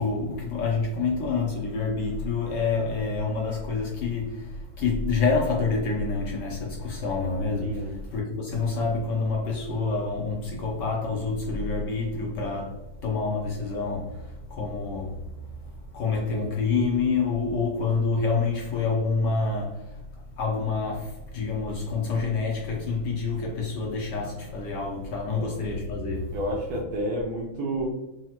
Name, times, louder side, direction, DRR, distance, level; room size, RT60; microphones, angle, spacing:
voice 1, 0.0-15.3 15.9-19.9 20.4-26.4, left 4 dB, 70° left, 1.0 m, -27 dB
voice 2, 7.6-7.9 25.3-25.5 26.3-27.9, right 1 dB, 75° right, 1.4 m, -30 dB
4.0 x 2.1 x 2.8 m
omnidirectional pair, 2.4 m